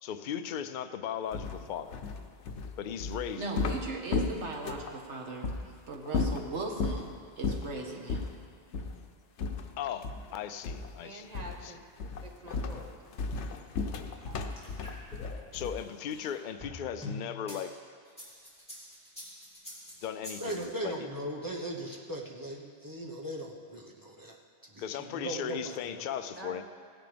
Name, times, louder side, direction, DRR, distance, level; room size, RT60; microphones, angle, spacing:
voice 1, 0.0-2.0 2.8-3.5 9.8-11.3 11.6-11.7 15.5-17.7 20.0-20.9 24.8-26.6, left 9 dB, 55° left, 10 dB, 0.6 m, -37 dB
sound 1, 1.3-5.0 5.4-5.6 6.1-7.0 7.4-7.7 8.1-8.3 8.7-9.0 9.4-10.3 10.6-11.0 11.3-11.7 12.0-15.9, left 4 dB, 90° left, 1.0 m, -34 dB
voice 2, 3.4-5.5 5.9-8.2, right 3 dB, 90° right, 0 dB, 1.7 m, -38 dB
voice 3, 11.0-13.0 26.4-26.6, right 2 dB, 40° right, 2 dB, 1.1 m, -47 dB
sound 2, 14.3-17.6 18.1-20.6, left 1 dB, 5° left, 2.9 m, -44 dB
voice 4, 20.4-24.4 24.6-26.0, right 1 dB, 20° right, -2 dB, 1.1 m, -38 dB
16.0 x 10.5 x 3.4 m, 2.2 s
omnidirectional pair, 1.1 m